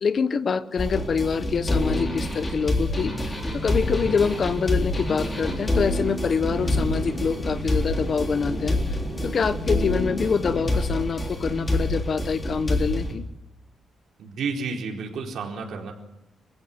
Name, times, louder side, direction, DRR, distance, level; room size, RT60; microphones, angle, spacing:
voice 1, 0.0-8.8 9.2-13.2, left 6 dB, 45° left, 14 dB, 0.9 m, -25 dB
sound 1, 0.8-13.1, left 1 dB, 20° left, 3.4 m, -27 dB
Thunder / Rain, 3.4-9.8, equal, 5° left, 6.1 m, -38 dB
voice 2, 14.2-15.9, right 4 dB, 70° right, 1 dB, 4.3 m, -31 dB
26.5 x 16.0 x 8.0 m, 0.89 s
wide cardioid pair, 145°, 0 cm